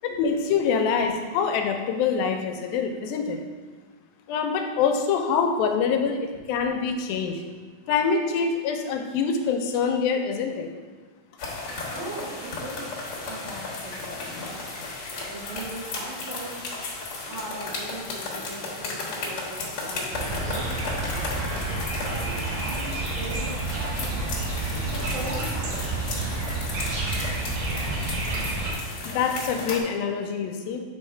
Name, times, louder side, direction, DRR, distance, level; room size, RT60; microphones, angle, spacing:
voice 1, 0.0-3.4 4.3-7.4 7.9-10.7 29.1-30.8, left 6 dB, 85° left, 4 dB, 2.4 m, -25 dB
sound 1, 11.4-29.8, left 3 dB, 60° left, 1.5 m, -34 dB
voice 2, 11.9-12.9 13.2-14.6 15.3-16.8 17.2-20.9 21.6-24.3 24.7-26.0, right 2 dB, 60° right, -7 dB, 2.7 m, -39 dB
sound 2, 20.1-28.7, right 2 dB, 90° right, 2.8 m, -30 dB
7.6 x 4.5 x 3.3 m, 1.4 s
omnidirectional pair, 4.1 m